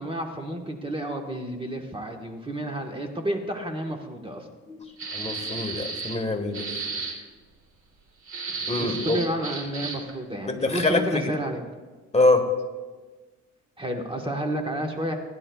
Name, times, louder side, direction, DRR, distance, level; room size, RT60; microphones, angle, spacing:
voice 1, 0.0-4.5 8.7-11.6 13.8-15.2, right 1 dB, 15° right, 3 dB, 1.3 m, -31 dB
sound 1, 5.0-6.2 6.5-7.2 8.3-10.1, right 4 dB, 60° right, 3.2 m, -33 dB
voice 2, 5.1-6.7 8.7-9.2 10.5-11.3 12.1-12.5, left 2 dB, 20° left, 3 dB, 1.5 m, -24 dB
20.5 x 11.0 x 2.3 m, 1.3 s
cardioid pair, 90°, 30 cm